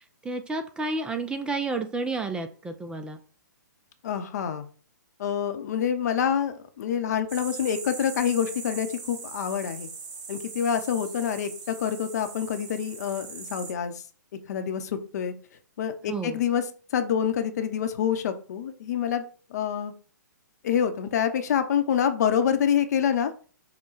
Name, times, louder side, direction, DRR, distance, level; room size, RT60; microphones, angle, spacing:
voice 1, 0.0-3.2 16.1-16.4, right 3 dB, 10° right, 7 dB, 0.4 m, -31 dB
voice 2, 4.0-4.7 5.2-9.9 10.3-13.9 14.5-15.3 15.8-16.6 16.9-19.2 19.5-19.9 20.6-23.3, left 8 dB, 55° left, 9 dB, 0.7 m, -26 dB
sound 1, 7.3-13.7, right 4 dB, 30° right, 1.5 m, -40 dB
5.8 x 2.2 x 4.0 m, 0.40 s
hypercardioid pair, 130°, 10 cm